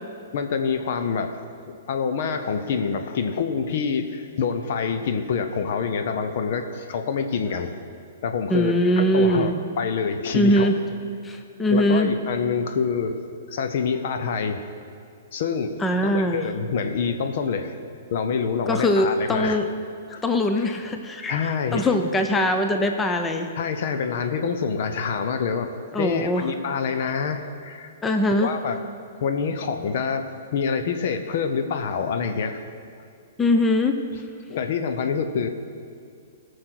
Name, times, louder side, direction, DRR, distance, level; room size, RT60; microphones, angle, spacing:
voice 1, 0.3-1.4 1.7-7.7 8.2-10.7 11.7-13.2 13.5-14.6 15.3-17.7 18.1-19.6 20.1-20.2 20.6-20.8 21.3-21.9 23.6-25.7 26.0-27.9 28.3-28.8 29.2-32.6 34.5-35.5, left 6 dB, 55° left, 7 dB, 0.8 m, -26 dB
voice 2, 8.5-9.6 10.3-10.8 11.2-12.1 15.8-16.4 18.7-19.7 20.2-23.5 25.9-26.5 28.0-28.5 33.4-34.0, left 1 dB, 15° left, 5 dB, 0.7 m, -22 dB
17.5 x 6.5 x 4.6 m, 2.3 s
figure-of-eight pair, 115°, 0 cm